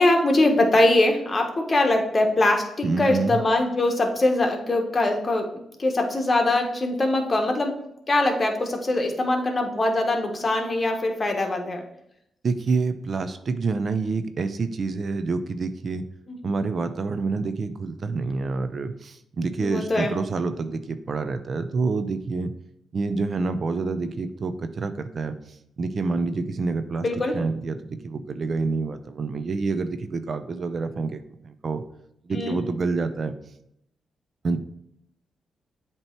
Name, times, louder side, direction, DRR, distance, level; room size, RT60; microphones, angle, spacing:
voice 1, 0.0-5.5 5.8-7.7 8.1-11.8 16.3-16.4 19.6-20.1 27.0-27.4 32.3-32.6, left 2 dB, 35° left, 3 dB, 1.3 m, -22 dB
voice 2, 2.8-3.4 12.4-16.0 16.4-22.5 22.9-25.3 25.8-27.0 27.3-31.8 32.3-33.3 34.4-34.6, right 4 dB, 55° right, 10 dB, 0.5 m, -27 dB
7.7 x 3.0 x 4.4 m, 0.79 s
supercardioid pair, 60°, 0 cm